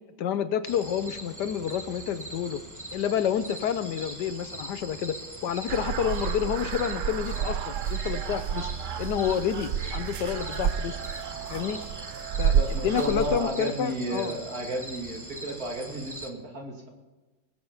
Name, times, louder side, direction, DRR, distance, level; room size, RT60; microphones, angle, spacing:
voice 1, 0.2-2.6 2.9-5.2 5.4-8.7 9.0-11.0 11.5-11.8 12.4-12.5 12.8-14.4, left 9 dB, 70° left, 12 dB, 1.3 m, -29 dB
sound 1, 0.7-16.3, right 1 dB, 10° right, 1.0 m, -42 dB
sound 2, 5.7-13.4, right 8 dB, 75° right, 0.7 m, -30 dB
voice 2, 12.5-16.9, right 1 dB, 50° right, 0 dB, 3.0 m, -33 dB
20.5 x 8.1 x 5.6 m, 1.2 s
omnidirectional pair, 2.0 m